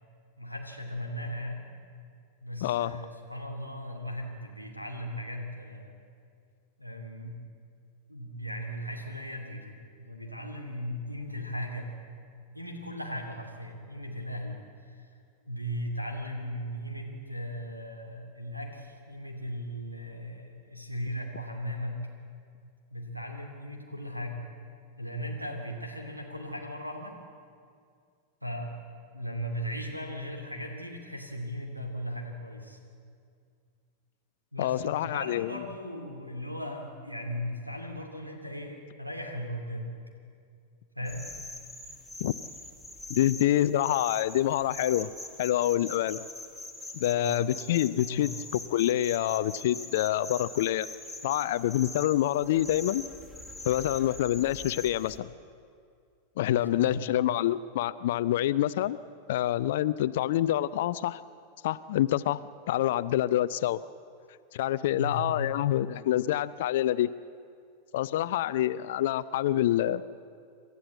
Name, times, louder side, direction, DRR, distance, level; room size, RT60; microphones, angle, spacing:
voice 1, 0.4-1.7 2.4-6.0 6.8-7.4 8.1-11.9 12.5-15.1 15.5-22.0 22.9-24.4 25.0-27.2 28.4-28.8 29.1-32.8 34.5-39.9 40.9-41.3 47.0-47.4 48.1-48.3 56.4-57.2 64.9-65.5, equal, 90° right, 3 dB, 2.7 m, -37 dB
voice 2, 2.6-3.0 34.6-35.6 42.2-42.3 43.1-45.1 45.4-46.2 46.9-50.9 51.2-53.0 53.6-55.3 56.4-59.0 59.3-61.2 61.6-62.4 62.7-63.8 64.5-67.1 67.9-70.0, left 13 dB, 55° left, 16 dB, 0.4 m, -27 dB
sound 1, 41.0-55.2, left 2 dB, ahead, 1.9 m, -43 dB
27.0 x 12.5 x 8.1 m, 2.3 s
figure-of-eight pair, 90°, 0 cm